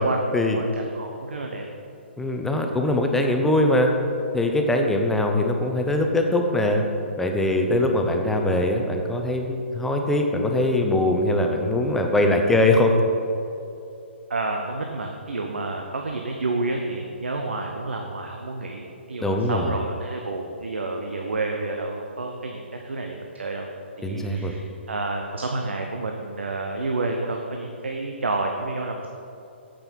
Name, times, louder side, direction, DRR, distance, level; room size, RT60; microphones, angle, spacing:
voice 1, 0.5-1.7 14.3-23.7 24.0-29.1, right 2 dB, 70° right, 2 dB, 0.8 m, -29 dB
voice 2, 2.2-3.9 4.3-6.8 7.2-12.9 19.2-19.7 24.0-24.5, left 1 dB, 5° left, 3 dB, 0.7 m, -22 dB
8.7 x 7.7 x 4.5 m, 2.7 s
figure-of-eight pair, 125°, 7 cm